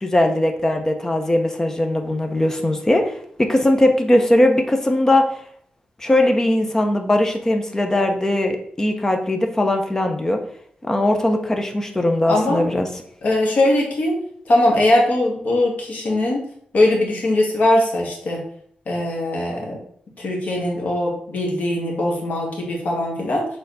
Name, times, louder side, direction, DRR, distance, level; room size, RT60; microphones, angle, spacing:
voice 1, 0.0-5.3 6.0-10.4 10.9-12.9, left 1 dB, 15° left, 5 dB, 0.8 m, -19 dB
voice 2, 12.3-12.6 13.2-14.1 14.5-16.4 16.7-18.4 18.9-19.8 20.2-23.5, left 1 dB, 55° left, -2 dB, 2.0 m, -20 dB
6.7 x 3.9 x 4.1 m, 0.63 s
wide cardioid pair, 145°, 3 cm